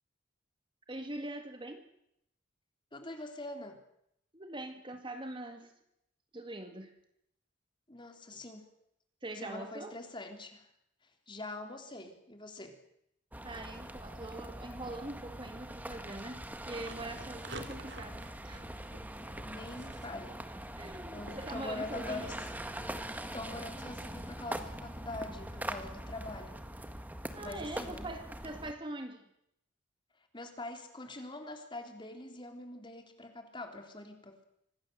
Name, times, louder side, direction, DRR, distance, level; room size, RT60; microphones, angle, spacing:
voice 1, 0.9-1.8 4.3-5.8 6.3-7.0 9.2-10.0 13.4-18.7 20.8-22.3 27.3-29.3, right 1 dB, 25° right, 6 dB, 2.0 m, -43 dB
voice 2, 2.9-3.8 7.9-8.7 9.3-10.7 11.3-12.8 19.4-20.4 21.1-22.3 23.3-26.6 27.4-28.2 30.3-34.4, left 2 dB, 25° left, 5 dB, 3.3 m, -44 dB
sound 1, 13.3-28.7, right 1 dB, 10° right, 1.7 m, -43 dB
sound 2, 15.3-23.2, right 2 dB, 70° right, 2.8 m, -53 dB
25.5 x 18.5 x 7.9 m, 0.77 s
head